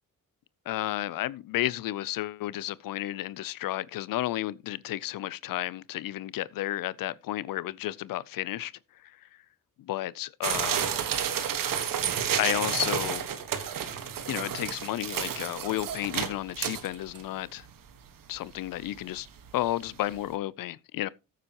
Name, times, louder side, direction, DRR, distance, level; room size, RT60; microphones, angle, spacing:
voice 1, 0.7-8.7 9.8-10.9 12.4-13.3 14.3-17.7 18.3-19.3 19.5-21.1, left 14 dB, 85° left, 0.6 m, -32 dB
sound 1, 10.4-17.2 17.7-17.8 18.0-18.1 18.7-18.9 19.3-19.4 19.7-19.8, right 8 dB, 80° right, 1.5 m, -30 dB
14.0 x 8.3 x 2.9 m
cardioid pair, 70°, 33 cm